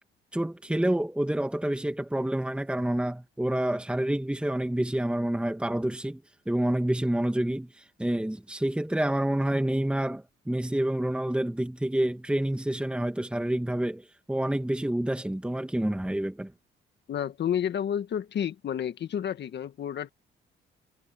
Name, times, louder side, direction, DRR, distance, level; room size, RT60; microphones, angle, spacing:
voice 1, 0.3-16.5, right 1 dB, 5° right, 1.9 m, -28 dB
voice 2, 17.1-20.1, left 9 dB, 60° left, 1.7 m, -30 dB
cardioid pair, 90°, 20 cm